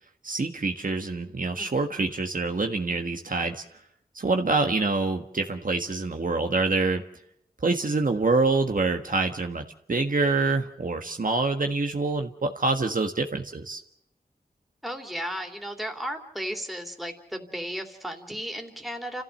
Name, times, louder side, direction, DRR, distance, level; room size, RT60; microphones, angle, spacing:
voice 1, 0.2-3.6 4.1-7.0 7.6-13.8, right 3 dB, 55° right, 4 dB, 1.5 m, -26 dB
voice 2, 14.8-19.2, equal, ahead, 3 dB, 3.2 m, -34 dB
29.5 x 15.0 x 6.7 m, 0.73 s
wide cardioid pair, 70°, 16 cm